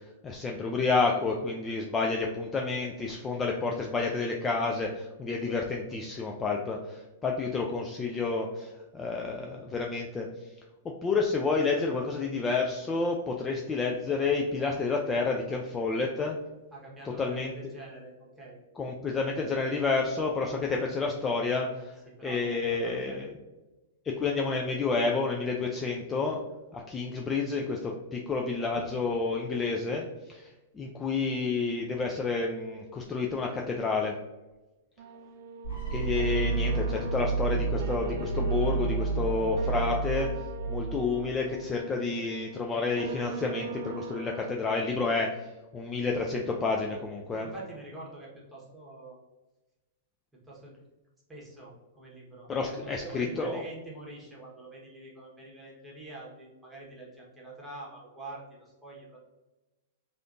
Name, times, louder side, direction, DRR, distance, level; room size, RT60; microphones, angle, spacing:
voice 1, 0.2-10.3 10.8-16.4 17.2-17.5 18.8-21.9 22.2-23.3 24.1-26.4 26.7-34.1 35.9-40.3 40.7-45.3 45.7-47.5 52.5-53.6, left 4 dB, 20° left, 0 dB, 0.3 m, -30 dB
voice 2, 16.7-18.6 22.1-23.3 28.7-29.3 47.3-49.2 50.4-50.8 51.3-59.2, right 2 dB, 10° right, -5 dB, 1.2 m, -45 dB
sound 1, 35.0-44.5, right 4 dB, 60° right, 0.4 m, -41 dB
sound 2, 35.6-41.6, right 4 dB, 70° left, 1.3 m, -30 dB
3.3 x 2.5 x 2.5 m, 1.1 s
hypercardioid pair, 110°, 0 cm